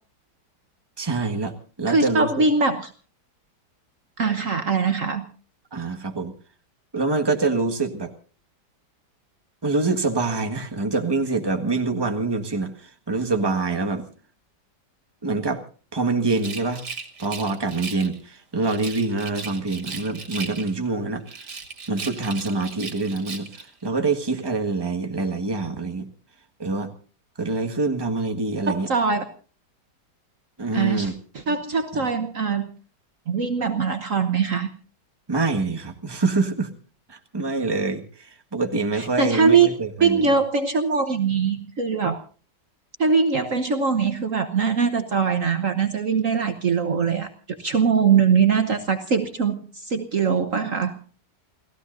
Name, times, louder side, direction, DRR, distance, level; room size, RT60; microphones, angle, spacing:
voice 1, 1.0-2.3 5.7-6.3 6.9-8.1 9.6-14.0 15.2-15.6 15.9-16.8 17.2-21.5 21.9-26.1 26.6-26.9 27.4-28.9 30.6-31.1 31.9-32.0 35.3-36.7 37.1-40.2, right 3 dB, 15° right, 5 dB, 1.5 m, -25 dB
voice 2, 1.9-2.9 4.2-5.3 28.7-29.2 30.7-32.7 33.3-34.7 38.9-39.7 40.0-42.2 43.0-51.0, right 5 dB, 50° right, 8 dB, 1.4 m, -22 dB
Rattle, 16.2-18.2 18.6-20.9 21.3-23.7, right 4 dB, 70° right, 2.8 m, -37 dB
29.5 x 16.5 x 2.6 m, 0.39 s
omnidirectional pair, 1.9 m